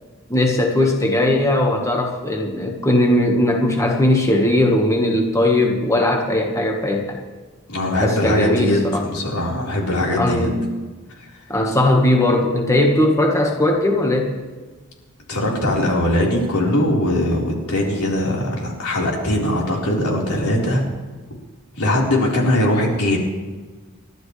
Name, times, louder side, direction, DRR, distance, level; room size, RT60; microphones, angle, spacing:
voice 1, 0.3-7.2 8.0-9.0 10.2-10.7 11.5-14.3, left 1 dB, 15° left, 1 dB, 1.5 m, -18 dB
voice 2, 7.7-10.5 11.2-11.3 15.3-20.8 21.8-23.2, left 1 dB, 85° left, -3 dB, 4.4 m, -20 dB
29.5 x 12.5 x 3.3 m, 1.4 s
head